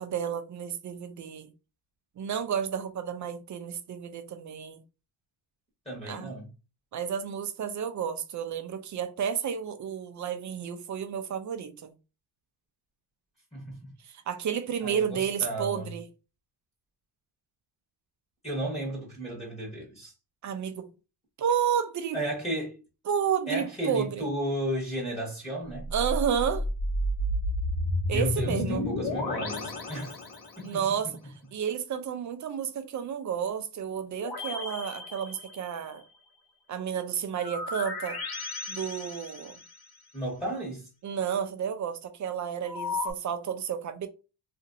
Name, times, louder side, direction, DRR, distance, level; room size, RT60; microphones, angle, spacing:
voice 1, 0.0-1.5 2.2-4.8 6.1-6.3 6.9-11.9 14.0-16.0 20.4-20.8 21.4-22.2 23.1-24.2 25.9-26.6 28.1-28.9 30.6-31.1 31.5-36.0 36.7-38.2 38.7-39.6 41.0-44.1, right 8 dB, 40° right, 0.4 m, -31 dB
voice 2, 5.8-6.5 13.5-13.9 14.8-15.9 18.4-20.1 22.1-22.8 23.5-25.9 28.1-30.2 30.6-30.8 40.1-40.9, right 1 dB, 15° left, 1.2 m, -34 dB
sound 1, 25.7-30.8 34.1-35.9 37.4-40.0 42.7-43.1, left 1 dB, 50° left, 0.9 m, -32 dB
2.8 x 2.5 x 2.6 m
cardioid pair, 115°, 49 cm